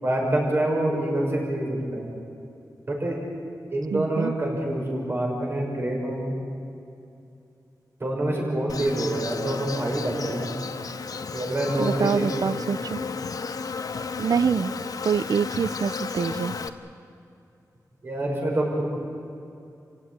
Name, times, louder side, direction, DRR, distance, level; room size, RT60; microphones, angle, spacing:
voice 1, 0.0-2.1 2.9-3.2 3.7-6.4 8.0-10.5 11.3-12.2 12.6-12.7 18.0-19.0, right 1 dB, 35° right, -1 dB, 6.3 m, -26 dB
voice 2, 3.9-4.3 11.8-13.0 14.2-14.7 15.0-16.6, right 6 dB, 70° right, 17 dB, 0.6 m, -25 dB
Insect, 8.7-16.7, left 5 dB, 65° left, 1.3 m, -33 dB
29.5 x 16.0 x 9.8 m, 2.6 s
wide cardioid pair, 115°, 7 cm